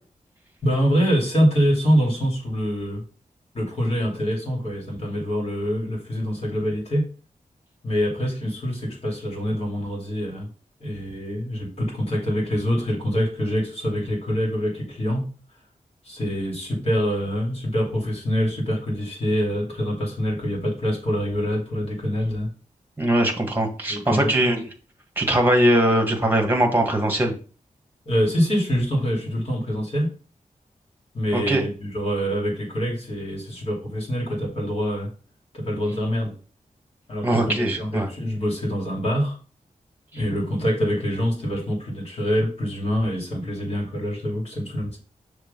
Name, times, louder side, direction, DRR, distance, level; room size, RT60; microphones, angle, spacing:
voice 1, 0.6-3.0 3.5-7.1 7.8-10.5 10.8-15.3 16.0-22.5 23.9-24.3 28.0-30.1 31.1-35.1 35.5-36.3 37.1-39.4 40.1-45.0, equal, 45° left, 2.8 m, -25 dB
voice 2, 23.0-24.7 25.1-27.3 31.3-31.6 37.2-38.1, right 1 dB, 15° right, 1.7 m, -21 dB
6.7 x 3.3 x 5.2 m
wide cardioid pair, 110°, 14 cm